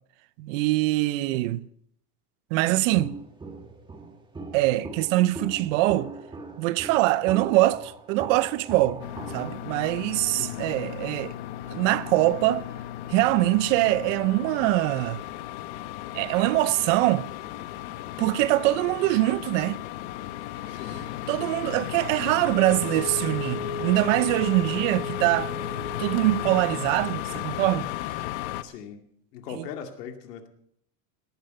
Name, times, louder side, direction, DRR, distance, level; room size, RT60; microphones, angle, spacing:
voice 1, 0.4-1.6 2.5-3.2 4.5-6.1 6.6-9.0 9.3-11.4 11.7-12.6 13.1-15.2 16.1-17.3 18.2-19.8 21.3-25.5 26.0-27.9 29.5-29.7, right 17 dB, 55° right, 0.6 m, -23 dB
Walk footsteps, 2.9-9.6, right 3 dB, 10° right, 1.7 m, -40 dB
sound 1, 9.0-28.6, left 13 dB, 50° left, 0.9 m, -35 dB
voice 2, 10.3-10.7 20.7-21.1 28.6-29.0 29.3-30.5, left 8 dB, 90° left, 2.4 m, -39 dB
Wind instrument woodwind instrument, 22.5-27.0, left 1 dB, 65° left, 5.0 m, -36 dB
18.5 x 10.5 x 5.4 m
supercardioid pair, 165°, 46 cm